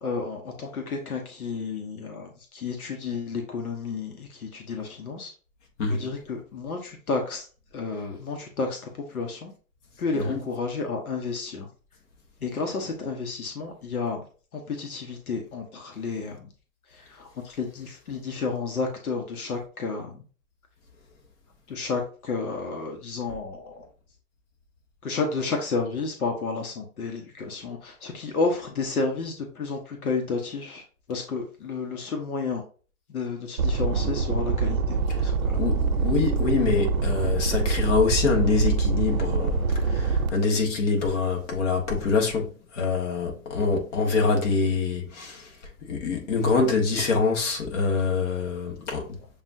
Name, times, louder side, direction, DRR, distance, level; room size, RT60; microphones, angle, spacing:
voice 1, 0.0-5.3 5.8-7.4 7.7-9.5 10.0-11.7 12.4-14.2 14.5-16.5 16.9-20.2 21.7-23.9 25.0-30.8 31.1-32.6 33.1-35.0 35.2-35.6, left 4 dB, 90° left, 1.1 m, -31 dB
sound 1, 33.6-40.3, right 4 dB, 75° right, 0.8 m, -25 dB
voice 2, 35.5-42.5 42.7-45.5 45.9-49.0, left 4 dB, 55° left, 1.4 m, -25 dB
7.0 x 2.4 x 2.6 m
hypercardioid pair, 145°, 42 cm